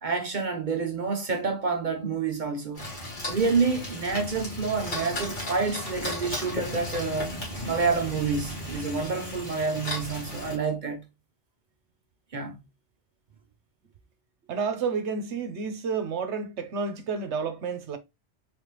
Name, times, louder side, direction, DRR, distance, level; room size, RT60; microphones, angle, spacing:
voice 1, 0.0-2.9 3.3-7.3 7.6-11.0 12.3-12.6, right 4 dB, 50° right, 0.7 m, -28 dB
sound 1, 2.7-10.6, left 1 dB, 40° left, 1.9 m, -35 dB
voice 2, 14.5-18.0, right 5 dB, 70° right, 1.1 m, -30 dB
4.0 x 3.5 x 3.0 m
omnidirectional pair, 1.2 m